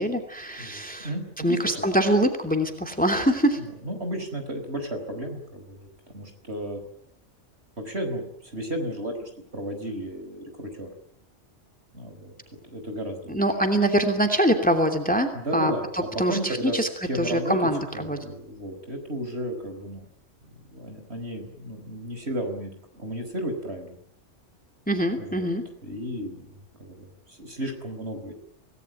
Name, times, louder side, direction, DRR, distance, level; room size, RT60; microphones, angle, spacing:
voice 1, 0.0-1.1 1.4-3.6 13.3-16.9 17.2-18.2 24.9-25.6, right 1 dB, 5° left, 5 dB, 2.8 m, -24 dB
voice 2, 0.6-1.9 3.6-5.8 6.1-6.8 7.8-10.9 11.9-12.3 12.7-13.4 15.3-16.8 17.1-17.6 17.9-20.1 20.7-24.0 25.2-25.5 25.8-28.3, right 1 dB, 55° right, 6 dB, 5.3 m, -33 dB
26.5 x 18.5 x 9.1 m, 0.65 s
omnidirectional pair, 1.3 m